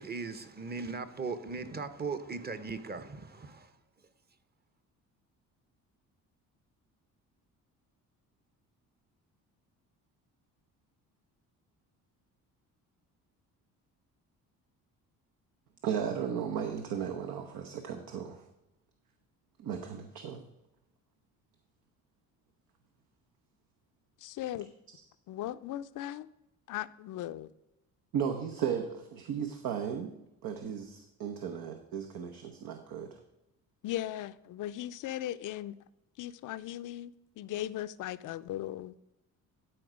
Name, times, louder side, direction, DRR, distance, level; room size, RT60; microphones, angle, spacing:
voice 1, 0.0-3.7, right 4 dB, 30° right, 0.9 m, -38 dB
voice 2, 15.8-18.4 19.6-20.4 28.1-30.1 30.4-33.2, right 8 dB, 75° right, 0.9 m, -35 dB
voice 3, 24.2-24.7 25.3-26.3 26.7-27.5 33.8-35.8 36.2-38.9, left 13 dB, 65° left, 0.5 m, -38 dB
12.0 x 4.5 x 5.0 m
cardioid pair, 95°, 34 cm